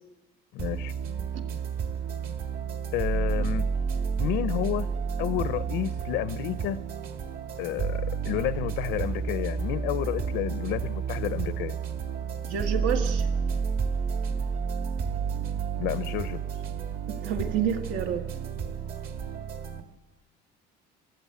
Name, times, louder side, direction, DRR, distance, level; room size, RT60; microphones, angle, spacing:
voice 1, 0.5-0.9 2.9-3.7 4.2-4.9 5.2-6.8 7.6-11.8 15.8-16.4, left 14 dB, 75° left, 14 dB, 0.6 m, -30 dB
sound 1, 0.6-19.8, right 6 dB, 55° right, 1.8 m, -30 dB
voice 2, 12.4-13.3 17.1-18.3, right 8 dB, 80° right, 6 dB, 1.9 m, -29 dB
25.5 x 14.0 x 8.5 m, 1.2 s
cardioid pair, 170°, 19 cm